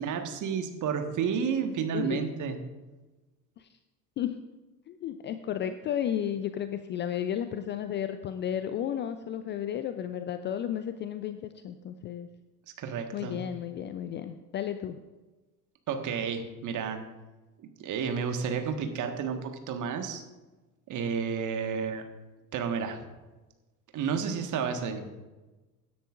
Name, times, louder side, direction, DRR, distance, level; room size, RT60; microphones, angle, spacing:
voice 1, 0.0-2.6 12.8-13.4 15.9-17.0 17.8-20.2 20.9-22.0 22.5-23.1 23.9-25.1, right 6 dB, 40° right, 6 dB, 1.6 m, -31 dB
voice 2, 4.9-12.3 13.1-15.0, left 10 dB, 25° left, 10 dB, 0.4 m, -33 dB
16.5 x 10.0 x 2.5 m, 1.2 s
figure-of-eight pair, 70°, 48 cm